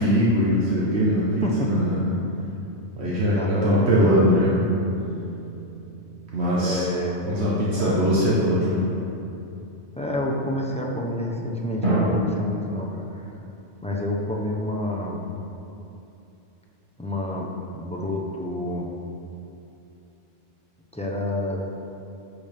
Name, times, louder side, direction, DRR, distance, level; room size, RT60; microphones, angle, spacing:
voice 1, 0.0-2.0 3.0-4.6 6.3-6.9 7.2-8.8, equal, 70° right, -7 dB, 1.3 m, -21 dB
voice 2, 1.4-1.9 2.2-2.3 3.3-4.2 6.5-7.3 7.8-8.1 10.0-13.3 13.8-15.2 17.0-18.9 20.9-21.7, left 1 dB, 5° left, -2 dB, 0.8 m, -28 dB
sound 1, 4.0-6.9 11.8-12.1, right 1 dB, 45° right, 2.1 m, -29 dB
11.0 x 6.5 x 3.5 m, 2.8 s
omnidirectional pair, 1.2 m